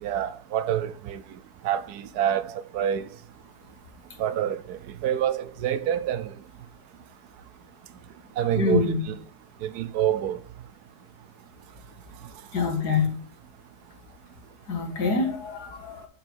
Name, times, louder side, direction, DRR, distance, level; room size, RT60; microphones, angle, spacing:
voice 1, 0.0-1.2 1.6-3.1 4.2-6.3 8.4-9.2 9.6-10.4, right 10 dB, 75° right, 1.1 m, -27 dB
voice 2, 8.6-9.0 12.5-13.1 14.7-16.1, left 4 dB, 75° left, 2.2 m, -25 dB
6.9 x 4.7 x 5.4 m
omnidirectional pair, 1.8 m